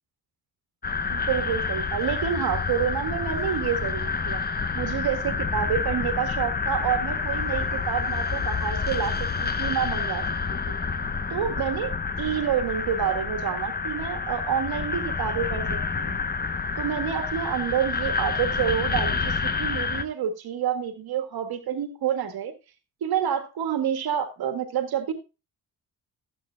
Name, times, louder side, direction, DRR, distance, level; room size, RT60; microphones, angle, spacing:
sound 1, 0.8-20.0, left 5 dB, 25° left, 0.9 m, -28 dB
voice 1, 1.1-4.4 4.7-10.2 10.7-10.8 11.3-16.2 16.8-22.5 23.0-25.1, right 9 dB, 80° right, 8 dB, 1.8 m, -28 dB
15.0 x 8.5 x 2.3 m, 0.29 s
cardioid pair, 105°, 36 cm